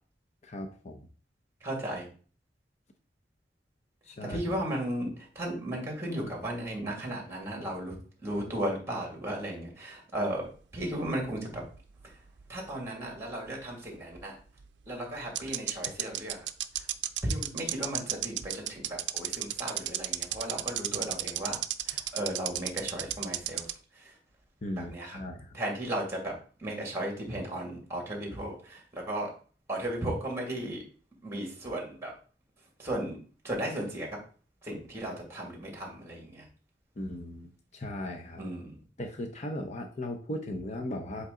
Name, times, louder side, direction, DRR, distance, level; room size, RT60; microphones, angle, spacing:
voice 1, 0.4-1.0 4.0-4.4 24.6-25.6 37.0-38.4 39.0-41.3, left 1 dB, 40° left, 4 dB, 0.7 m, -37 dB
voice 2, 1.6-2.1 4.2-8.0 8.2-11.6 12.0-12.2 12.5-14.4 14.9-16.5 16.8-16.9 17.2-24.2 24.8-25.2 25.5-29.3 29.7-30.8 31.2-32.2 32.8-33.2 33.4-34.2 34.6-36.5 38.4-38.8, right 1 dB, 15° right, 0 dB, 2.1 m, -35 dB
sound 1, 11.1-12.4 12.7-12.8 14.6-14.7 15.4-23.7, right 14 dB, 70° right, 0.4 m, -32 dB
7.7 x 3.3 x 3.8 m, 0.40 s
head